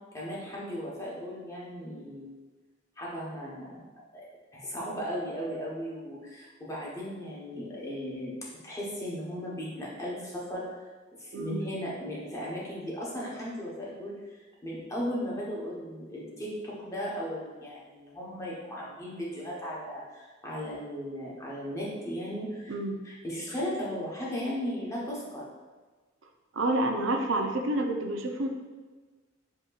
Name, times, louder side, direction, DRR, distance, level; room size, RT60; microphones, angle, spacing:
voice 1, 0.1-2.4 3.0-3.8 4.1-4.2 4.5-8.3 8.6-10.8 11.2-14.1 14.6-22.7 23.0-25.5, equal, 15° left, -5 dB, 1.0 m, -36 dB
voice 2, 26.5-28.5, right 1 dB, 75° right, 3 dB, 0.5 m, -28 dB
7.2 x 2.8 x 2.4 m, 1.3 s
head